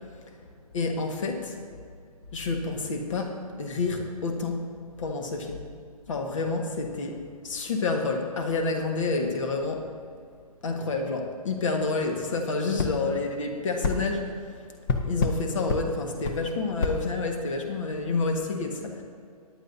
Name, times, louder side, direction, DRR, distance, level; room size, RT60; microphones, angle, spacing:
voice 1, 0.7-1.6 2.3-4.7 5.0-5.6 6.1-9.9 10.6-14.3 15.0-19.0, left 3 dB, 55° left, 3 dB, 1.6 m, -29 dB
sound 1, 12.8-12.9 13.8-14.0 14.9-15.4 15.7-15.8 16.2-16.4 16.8-17.0, left 4 dB, 30° left, 0.9 m, -26 dB
17.0 x 10.5 x 2.7 m, 2.3 s
hypercardioid pair, 145°, 20 cm